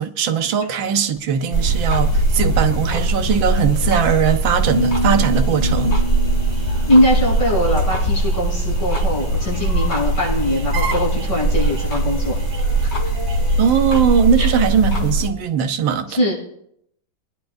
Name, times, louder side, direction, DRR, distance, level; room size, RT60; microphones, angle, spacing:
voice 1, 0.0-6.0 13.6-16.2, right 7 dB, 80° right, 1.6 m, -19 dB
sound 1, 1.2-14.7, right 5 dB, 45° right, 1.6 m, -39 dB
sound 2, 1.5-15.3, right 2 dB, 35° left, 2.0 m, -20 dB
sound 3, 4.7-7.8, right 1 dB, 10° right, 5.5 m, -27 dB
voice 2, 6.9-12.5 12.8-13.1 14.4-14.5 16.1-16.3, left 1 dB, 75° left, 7.3 m, -21 dB
24.5 x 10.5 x 2.6 m
omnidirectional pair, 2.1 m